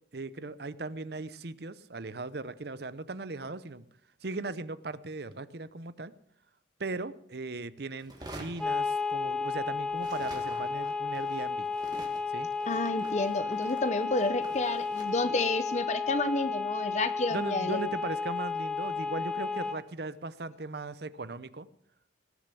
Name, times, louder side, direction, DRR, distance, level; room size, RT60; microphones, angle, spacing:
voice 1, 0.1-3.8 4.2-6.1 6.8-11.7 12.3-12.5 17.3-21.7, right 3 dB, 55° right, 15 dB, 0.7 m, -38 dB
sound 1, 8.0-9.6 9.9-17.1, right 1 dB, 20° right, 2.1 m, -49 dB
sound 2, 8.6-19.8, left 4 dB, 5° left, 0.6 m, -33 dB
voice 2, 12.7-17.9, left 2 dB, 35° left, 11 dB, 0.8 m, -30 dB
19.0 x 6.8 x 8.4 m, 0.67 s
head